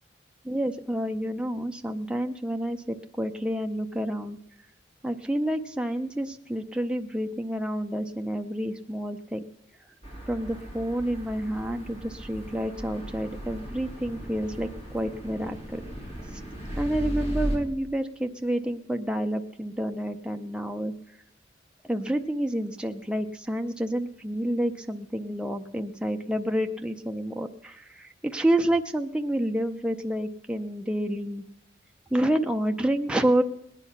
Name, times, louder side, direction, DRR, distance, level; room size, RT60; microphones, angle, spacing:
voice 1, 0.4-4.4 5.0-9.4 10.3-14.7 14.9-15.8 16.8-20.9 21.8-31.4 32.1-33.4, right 1 dB, 5° right, 4 dB, 0.5 m, -29 dB
sound 1, 10.0-17.6, right 1 dB, 35° left, 2.9 m, -36 dB
19.0 x 9.8 x 5.8 m, 0.78 s
head